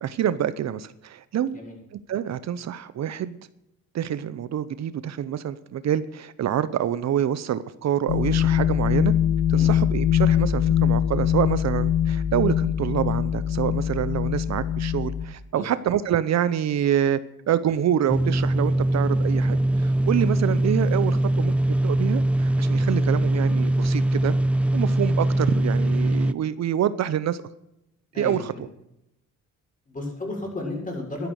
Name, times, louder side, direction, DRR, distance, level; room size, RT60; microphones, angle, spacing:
voice 1, 0.0-1.6 2.1-3.4 3.9-9.1 9.5-17.2 17.5-24.3 24.7-27.4 28.2-28.7, right 10 dB, 60° right, 15 dB, 0.9 m, -26 dB
sound 1, 8.1-15.2, left 9 dB, 75° left, 1.5 m, -22 dB
sound 2, 18.1-26.3, right 1 dB, 5° right, 0.5 m, -22 dB
voice 2, 28.1-28.6 29.9-31.3, left 2 dB, 25° left, 0 dB, 6.8 m, -33 dB
12.5 x 11.5 x 6.5 m, 0.84 s
cardioid pair, 90°, 30 cm